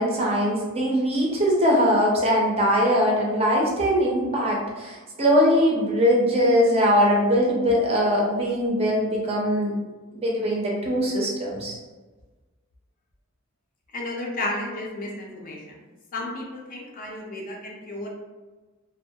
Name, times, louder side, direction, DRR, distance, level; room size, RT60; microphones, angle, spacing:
voice 1, 0.0-9.7 10.1-11.8, equal, 25° right, -3 dB, 0.5 m, -21 dB
voice 2, 13.9-15.8 16.1-18.1, left 2 dB, 40° left, -1 dB, 0.4 m, -33 dB
2.2 x 2.1 x 2.7 m, 1.3 s
head